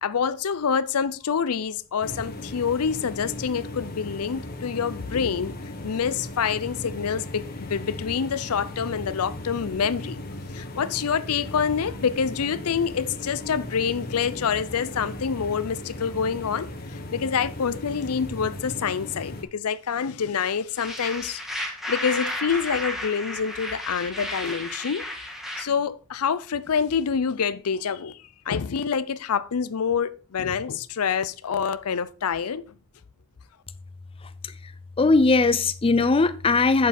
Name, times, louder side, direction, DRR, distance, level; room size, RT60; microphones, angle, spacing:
voice 1, 0.0-5.5 5.8-10.2 10.5-16.7 17.1-21.4 21.9-25.0 25.6-28.2 28.5-32.6, left 6 dB, 75° left, 0.5 m, -26 dB
sound 1, 2.0-19.4, left 1 dB, 45° left, 1.3 m, -37 dB
sound 2, 20.8-25.6, left 1 dB, ahead, 1.7 m, -33 dB
voice 2, 35.0-36.9, left 3 dB, 25° left, 0.4 m, -20 dB
8.1 x 7.2 x 4.2 m
head